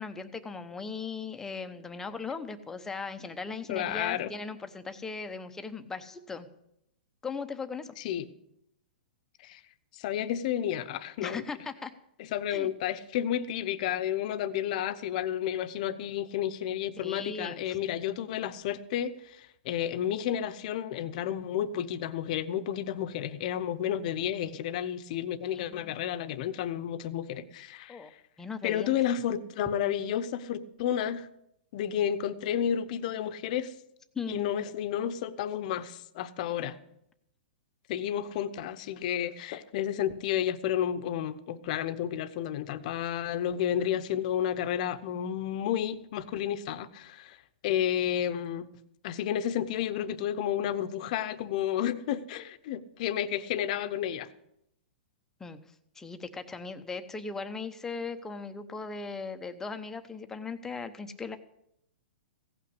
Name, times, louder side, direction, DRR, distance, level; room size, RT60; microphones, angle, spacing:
voice 1, 0.0-6.5 7.2-8.0 11.2-11.9 12.5-12.7 17.0-17.8 25.5-26.0 27.9-28.1 28.4-28.9 34.1-34.5 55.4-55.6 55.9-61.4, left 4 dB, 10° left, 8 dB, 0.9 m, -38 dB
voice 2, 3.7-4.3 8.0-8.3 9.4-9.6 9.9-11.4 12.3-28.1 28.6-31.3 31.7-33.7 34.3-36.8 37.9-47.4 47.6-48.7 49.0-54.3, left 10 dB, 50° left, 12 dB, 0.9 m, -31 dB
16.0 x 5.8 x 9.7 m, 0.79 s
hypercardioid pair, 145°, 5 cm